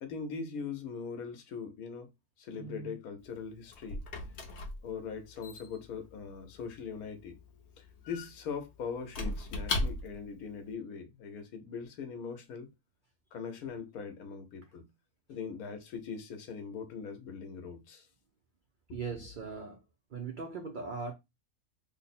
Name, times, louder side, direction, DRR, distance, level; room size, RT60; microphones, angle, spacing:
voice 1, 0.0-2.1 2.4-4.0 4.8-7.4 7.8-12.7 13.3-14.9 15.3-18.1 18.9-19.0, left 5 dB, 85° left, 1.2 m, -41 dB
Squeak / Wood, 3.2-10.4, left 2 dB, 55° left, 0.9 m, -39 dB
voice 2, 18.9-19.8 20.1-21.1, right 4 dB, 90° right, 0.4 m, -39 dB
3.4 x 2.0 x 4.1 m
omnidirectional pair, 1.5 m